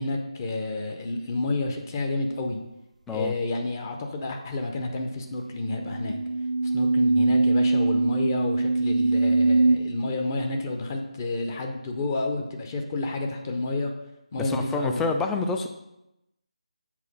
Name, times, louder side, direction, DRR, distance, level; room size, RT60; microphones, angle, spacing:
voice 1, 0.0-2.6 3.1-6.2 6.6-13.9 14.3-15.0, left 2 dB, 25° left, 3 dB, 0.7 m, -30 dB
sound 1, 5.3-9.8, right 3 dB, 80° right, 0.4 m, -22 dB
voice 2, 14.4-15.7, left 3 dB, 5° left, 4 dB, 0.3 m, -27 dB
7.4 x 3.9 x 5.3 m, 0.90 s
figure-of-eight pair, 160°, 4 cm